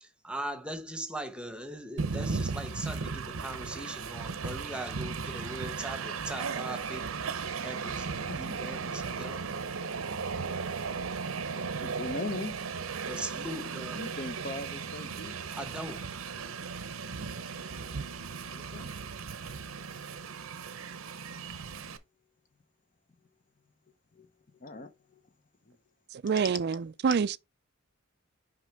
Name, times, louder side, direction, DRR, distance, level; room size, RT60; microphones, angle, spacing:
voice 1, 0.0-7.1 7.6-9.4 13.1-14.0 15.5-16.1, right 1 dB, 5° right, 1.0 m, -40 dB
Train, 2.0-22.0, right 5 dB, 80° right, 0.8 m, -36 dB
voice 2, 11.8-12.5 13.9-15.4 17.9-18.1 18.5-18.9 24.1-24.3 24.6-25.2 25.7-25.8, left 2 dB, 40° left, 0.7 m, -39 dB
voice 3, 26.1-27.4, right 6 dB, 50° right, 0.4 m, -27 dB
6.2 x 5.2 x 3.6 m
head